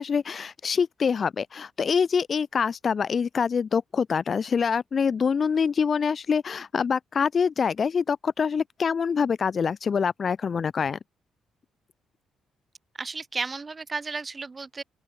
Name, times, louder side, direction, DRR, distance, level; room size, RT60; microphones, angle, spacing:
voice 1, 0.0-11.0, left 6 dB, 45° left, 1.0 m, -25 dB
voice 2, 13.0-14.8, right 4 dB, 30° right, 1.0 m, -33 dB
open air
cardioid pair, 90°, 0 cm